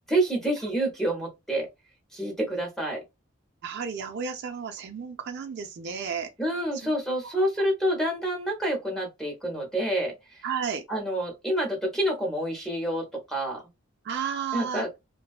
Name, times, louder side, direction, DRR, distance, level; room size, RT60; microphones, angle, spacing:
voice 1, 0.1-1.7 2.1-3.0 6.4-10.2 10.9-13.6 14.5-14.9, right 1 dB, ahead, 0.7 m, -28 dB
voice 2, 3.6-6.3 6.8-6.9 7.2-7.3 10.4-10.8 14.0-14.9, right 6 dB, 50° right, 0.3 m, -32 dB
2.5 x 2.2 x 2.3 m
head